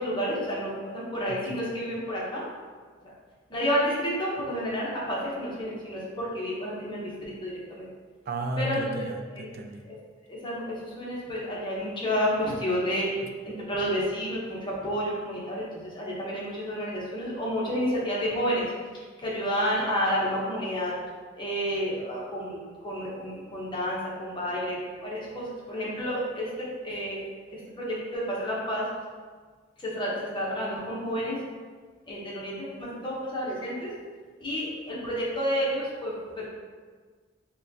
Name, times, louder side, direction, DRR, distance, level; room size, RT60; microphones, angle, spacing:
voice 1, 0.0-2.5 3.0-3.1 3.5-7.9 8.6-9.1 9.4-9.5 9.8-10.0 10.3-13.1 13.4-20.9 21.4-26.5 26.8-27.2 27.5-28.8 29.8-31.4 32.1-33.9 34.4-36.5, equal, 25° left, -6 dB, 0.8 m, -30 dB
voice 2, 1.3-1.6 8.3-9.9 13.2-13.3, right 1 dB, 50° right, 4 dB, 0.4 m, -34 dB
6.1 x 2.2 x 2.7 m, 1.5 s
head